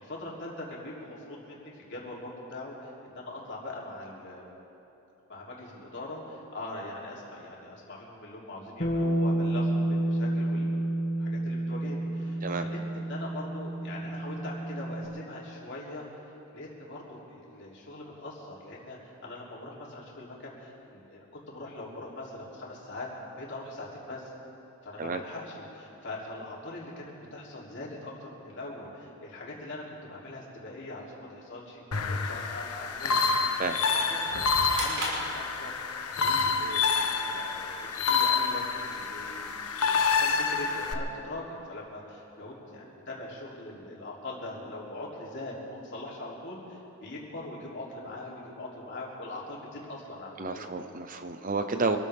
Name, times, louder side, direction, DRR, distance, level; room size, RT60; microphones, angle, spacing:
voice 1, 0.0-4.4 5.3-10.9 11.2-16.1 16.5-23.1 23.4-24.3 24.8-33.2 33.7-51.0, left 2 dB, 55° left, -4 dB, 3.3 m, -42 dB
Bass guitar, 8.8-15.0, right 1 dB, 40° left, 2.0 m, -30 dB
sound 1, 31.9-40.9, left 5 dB, 90° left, 1.0 m, -28 dB
sound 2, 34.7-36.1, right 1 dB, 70° right, 4.8 m, -34 dB
voice 2, 50.4-52.0, right 3 dB, 40° right, 7 dB, 0.7 m, -30 dB
26.0 x 14.0 x 3.6 m, 3.0 s
head